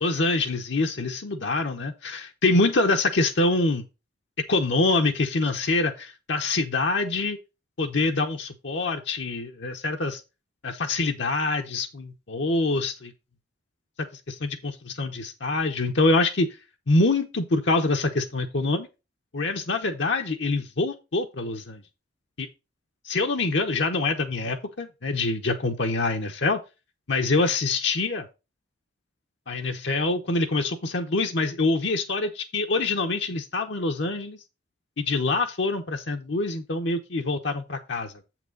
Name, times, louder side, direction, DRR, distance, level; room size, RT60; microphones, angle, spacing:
voice 1, 0.0-3.9 4.5-7.4 7.8-10.2 10.6-13.1 14.1-16.5 16.9-18.9 19.3-21.8 22.4-22.5 23.0-26.6 27.1-28.3 29.5-34.4 35.0-38.1, left 3 dB, 65° left, 0.9 m, -25 dB
7.8 x 6.0 x 3.9 m
head